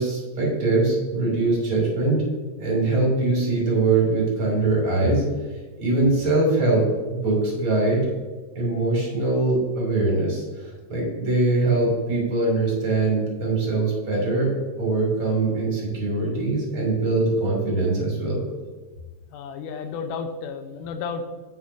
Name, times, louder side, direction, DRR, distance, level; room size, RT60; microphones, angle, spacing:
voice 1, 0.0-2.2 2.6-5.2 5.8-8.0 8.6-14.5 14.8-18.4, right 2 dB, 40° right, -2 dB, 3.4 m, -22 dB
voice 2, 19.3-21.3, left 5 dB, 80° left, 7 dB, 2.2 m, -32 dB
9.3 x 8.5 x 2.6 m, 1.3 s
omnidirectional pair, 3.9 m